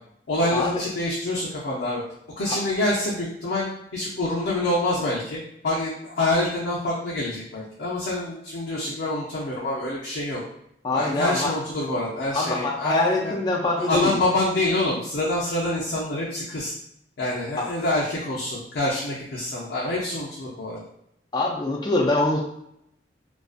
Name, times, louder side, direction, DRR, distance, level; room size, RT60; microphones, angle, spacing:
voice 1, 0.3-2.0 2.4-3.7 3.9-10.4 10.9-13.3 13.8-16.7 17.2-20.8, left 1 dB, 80° left, -5 dB, 0.5 m, -26 dB
voice 2, 10.8-11.6 12.3-14.1 17.6-17.7 21.3-22.4, left 2 dB, 25° left, -2 dB, 0.3 m, -24 dB
2.4 x 2.3 x 2.3 m, 0.76 s
head